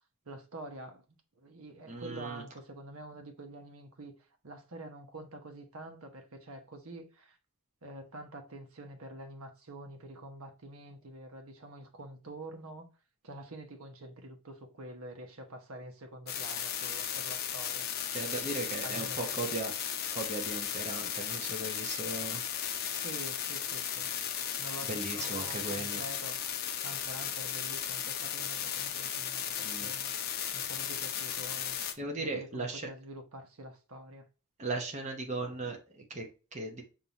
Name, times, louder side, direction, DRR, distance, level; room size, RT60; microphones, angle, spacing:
voice 1, 0.2-1.0 1.4-4.1 4.4-7.4 7.8-12.9 13.2-17.9 18.8-19.6 23.0-24.1 24.6-26.6 26.8-30.1 30.5-31.8 32.2-34.2, right 1 dB, 85° right, 1.0 m, -47 dB
voice 2, 1.8-2.4 18.1-19.7 20.1-22.4 24.9-26.0 29.6-29.9 32.0-32.8 34.6-36.8, right 2 dB, 35° right, 0.9 m, -37 dB
sound 1, 16.3-31.9, left 9 dB, 45° left, 0.6 m, -35 dB
5.4 x 2.8 x 2.9 m
head